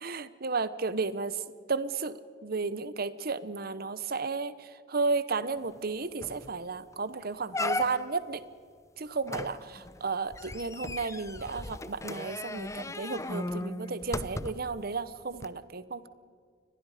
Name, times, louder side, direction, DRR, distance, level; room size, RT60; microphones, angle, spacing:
voice 1, 0.0-1.4 1.7-8.4 9.0-16.1, right 4 dB, 55° right, 15 dB, 1.0 m, -33 dB
sound 1, 5.8-5.9 6.2-6.5 6.9-7.0 7.5-8.3 9.3-14.8 15.4-15.5, left 2 dB, 15° left, 0.7 m, -36 dB
30.0 x 23.5 x 5.0 m, 2.1 s
head